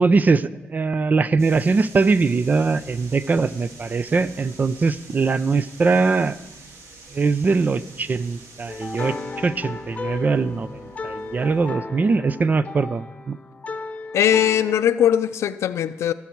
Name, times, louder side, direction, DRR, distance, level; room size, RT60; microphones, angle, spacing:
voice 1, 0.0-6.4 7.1-13.4, right 4 dB, 40° right, 0.5 m, -21 dB
sound 1, 1.4-11.7, right 3 dB, 90° right, 1.7 m, -46 dB
sound 2, 8.7-14.8, left 3 dB, 30° left, 0.9 m, -34 dB
voice 2, 14.1-16.1, left 10 dB, 85° left, 0.5 m, -20 dB
20.5 x 7.2 x 4.6 m
cardioid pair, 80°, 5 cm